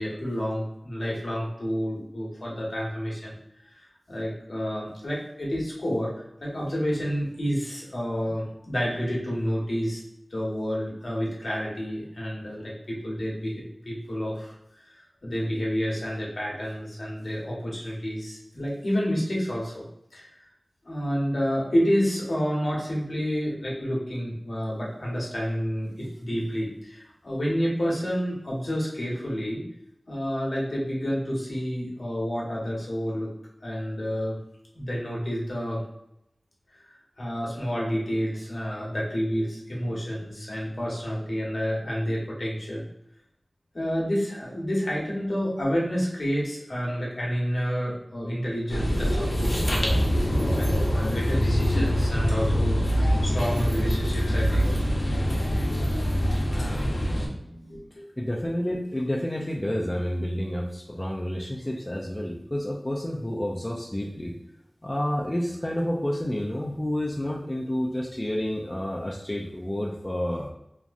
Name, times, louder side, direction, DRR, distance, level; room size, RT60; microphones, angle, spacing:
voice 1, 0.0-3.3 3.6-10.0 10.3-14.5 15.2-19.8 20.1-20.3 20.8-29.6 30.1-33.3 33.6-34.4 34.7-35.8 37.2-42.9 43.7-50.0 50.6-54.7 56.8-57.8, equal, 70° left, -4 dB, 0.9 m, -29 dB
sound 1, 48.7-57.3, equal, 85° left, 0.5 m, -24 dB
voice 2, 58.2-64.3 64.8-70.5, left 1 dB, 20° left, -1 dB, 0.4 m, -29 dB
3.0 x 2.5 x 2.4 m, 0.82 s
wide cardioid pair, 55°, 0 cm